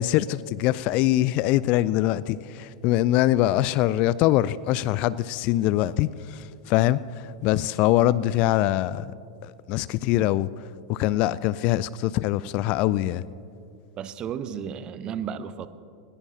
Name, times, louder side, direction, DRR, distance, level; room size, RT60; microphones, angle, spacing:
voice 1, 0.0-9.1 9.4-10.5 10.9-13.3, left 14 dB, 45° left, 0.4 m, -23 dB
voice 2, 14.0-15.7, right 8 dB, 30° right, 0.7 m, -33 dB
20.0 x 18.5 x 2.8 m
figure-of-eight pair, 90°, 3 cm